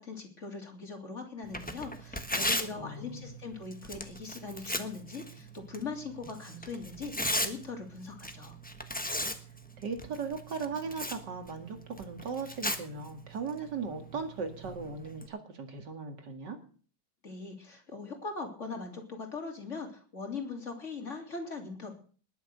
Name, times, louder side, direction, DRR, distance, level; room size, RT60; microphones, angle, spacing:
voice 1, 0.0-8.6 17.2-22.0, left 4 dB, 40° left, 3 dB, 3.4 m, -41 dB
Tearing, 1.4-15.3, left 1 dB, 5° left, 1.0 m, -38 dB
voice 2, 2.7-3.3 9.8-16.6, right 5 dB, 75° right, 6 dB, 2.7 m, -38 dB
20.5 x 7.3 x 6.7 m, 0.42 s
omnidirectional pair, 1.9 m